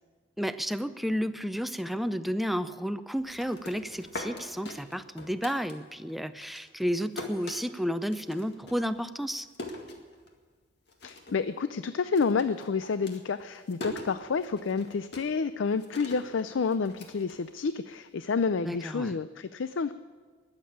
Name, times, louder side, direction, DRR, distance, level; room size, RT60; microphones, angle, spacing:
voice 1, 0.4-9.5 18.6-19.2, equal, ahead, 11 dB, 0.5 m, -32 dB
sound 1, 3.2-6.1 6.4-10.6 10.9-11.5 11.7-18.0, left 2 dB, 60° left, 2.0 m, -43 dB
voice 2, 11.0-19.9, left 5 dB, 90° left, 13 dB, 0.5 m, -29 dB
20.5 x 7.5 x 8.6 m, 1.5 s
head